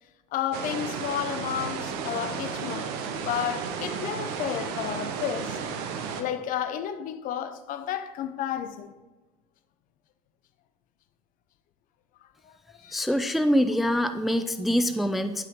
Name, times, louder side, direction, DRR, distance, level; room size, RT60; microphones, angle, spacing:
voice 1, 0.3-5.6 6.2-9.0 12.4-12.6 12.8-13.0, left 10 dB, 45° left, 0.7 m, -32 dB
sound 1, 0.5-6.2, right 6 dB, 55° right, 1.0 m, -33 dB
voice 2, 12.9-15.5, equal, ahead, 0.4 m, -24 dB
10.5 x 5.8 x 3.7 m
hypercardioid pair, 75°, 19 cm